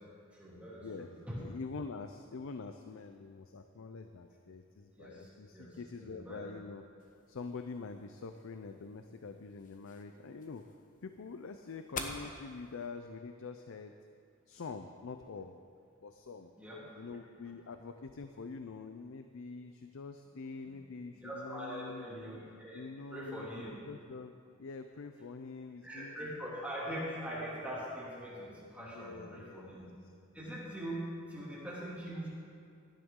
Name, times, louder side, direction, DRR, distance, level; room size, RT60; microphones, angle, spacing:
voice 1, 0.3-1.4 5.0-6.5 16.6-17.0 20.6-20.7 21.1-22.8 23.1-23.7 25.8-29.8 30.3-32.3, equal, 5° right, -6 dB, 2.6 m, -42 dB
voice 2, 1.4-6.9 7.3-10.6 11.0-13.9 14.5-15.5 16.0-16.5 17.0-22.1 22.7-23.5 23.9-24.3 24.6-26.1 26.4-26.5 28.8-29.9, left 4 dB, 65° left, 7 dB, 0.5 m, -45 dB
sound 1, 7.0-12.9, left 4 dB, 35° left, 1.0 m, -49 dB
16.5 x 11.0 x 3.8 m, 2.3 s
head